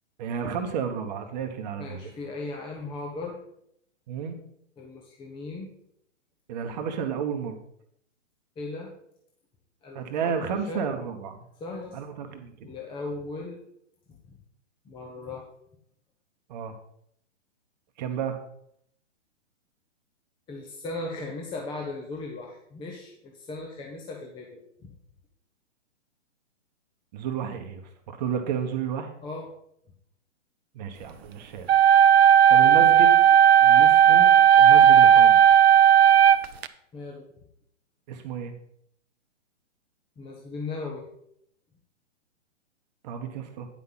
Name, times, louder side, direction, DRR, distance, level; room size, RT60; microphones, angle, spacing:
voice 1, 0.2-2.1 4.1-4.4 6.5-7.6 9.9-11.4 11.9-12.5 16.5-16.7 18.0-18.4 27.1-29.1 30.7-31.7 32.5-33.2 33.6-35.4 38.1-38.5 43.0-43.7, right 7 dB, 35° right, 6 dB, 1.1 m, -32 dB
voice 2, 1.8-3.4 4.8-5.7 8.6-8.9 9.8-10.8 11.6-12.0 12.6-13.6 14.8-15.4 20.5-24.9 29.2-29.5 36.9-37.3 40.2-41.1, left 3 dB, 15° left, 0 dB, 1.0 m, -37 dB
sound 1, 31.7-36.7, right 9 dB, 55° right, 0.7 m, -15 dB
9.6 x 5.7 x 5.7 m, 0.71 s
hypercardioid pair, 130°, 37 cm